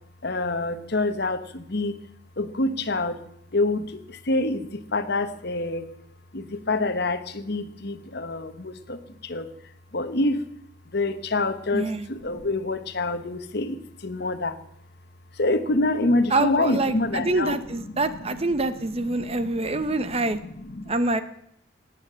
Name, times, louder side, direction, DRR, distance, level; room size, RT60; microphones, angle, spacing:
voice 1, 0.2-2.0 2.4-3.2 3.5-5.9 6.3-9.5 9.9-10.4 10.9-14.6 15.4-18.2 19.0-20.9, left 2 dB, 55° left, 10 dB, 1.2 m, -27 dB
voice 2, 11.7-12.1 16.3-20.4 20.9-21.2, right 2 dB, 30° right, 11 dB, 0.9 m, -25 dB
18.5 x 9.5 x 7.5 m, 0.74 s
head